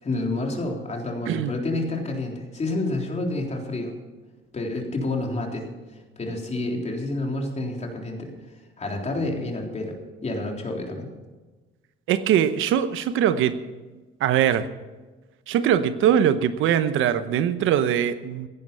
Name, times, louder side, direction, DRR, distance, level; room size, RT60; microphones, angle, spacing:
voice 1, 0.0-3.9 4.5-5.7 6.2-8.3 8.8-11.1, left 2 dB, 35° left, 1 dB, 3.6 m, -29 dB
voice 2, 12.1-13.5 14.2-14.7 15.5-18.5, right 9 dB, 85° right, 12 dB, 0.9 m, -21 dB
15.5 x 11.0 x 5.6 m, 1.2 s
cardioid pair, 90°, 20 cm